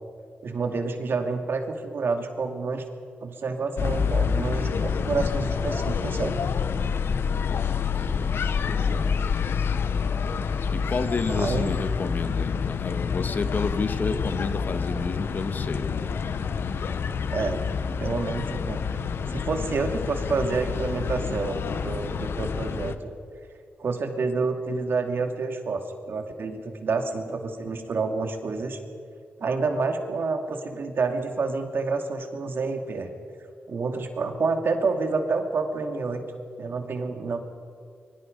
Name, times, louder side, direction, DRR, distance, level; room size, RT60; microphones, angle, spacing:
voice 1, 0.4-2.8 3.2-6.3 11.3-11.7 17.3-17.6 18.0-18.8 19.3-23.1 23.8-28.8 29.4-33.1 33.7-36.2 36.6-37.4, right 4 dB, 65° right, 5 dB, 2.4 m, -28 dB
sound 1, 3.8-23.0, left 6 dB, 70° left, 1.1 m, -28 dB
voice 2, 7.8-8.3 8.8-9.1 10.7-16.0, left 4 dB, 50° left, 9 dB, 1.5 m, -30 dB
25.0 x 23.0 x 5.3 m, 2.2 s
wide cardioid pair, 100°, 4 cm